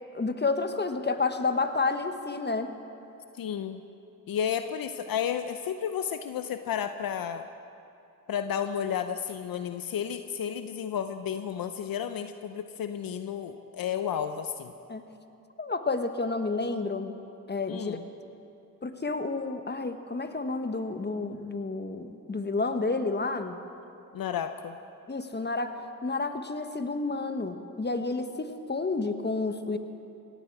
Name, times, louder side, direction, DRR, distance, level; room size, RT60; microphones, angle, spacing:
voice 1, 0.1-2.8 14.9-15.0 15.6-17.1 17.5-18.0 18.8-23.6 25.1-29.8, left 3 dB, 30° left, 8 dB, 1.3 m, -30 dB
voice 2, 3.4-3.8 4.3-7.5 8.3-14.7 17.7-18.0 24.1-24.8, left 8 dB, 70° left, 9 dB, 0.7 m, -32 dB
17.5 x 15.5 x 4.8 m, 2.8 s
supercardioid pair, 40°, 36 cm